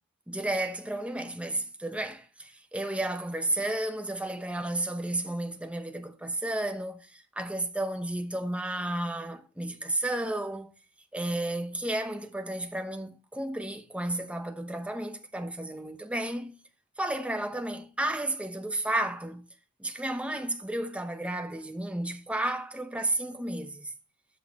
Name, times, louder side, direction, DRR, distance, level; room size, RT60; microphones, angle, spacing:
voice 1, 0.3-10.7 11.1-16.6 17.0-19.5 19.8-23.9, right 1 dB, 5° right, 0.9 m, -32 dB
12.5 x 5.9 x 3.2 m
head